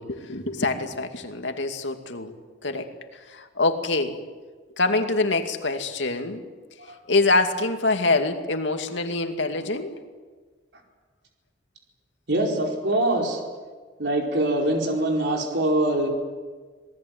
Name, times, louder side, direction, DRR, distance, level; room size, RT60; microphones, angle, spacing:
voice 1, 0.0-2.3 2.6-4.2 4.8-6.4 7.1-9.9, left 2 dB, 85° left, 6 dB, 2.5 m, -25 dB
voice 2, 12.3-13.4 14.0-16.1, right 1 dB, 65° right, 1 dB, 4.7 m, -23 dB
27.0 x 19.5 x 9.5 m, 1.4 s
head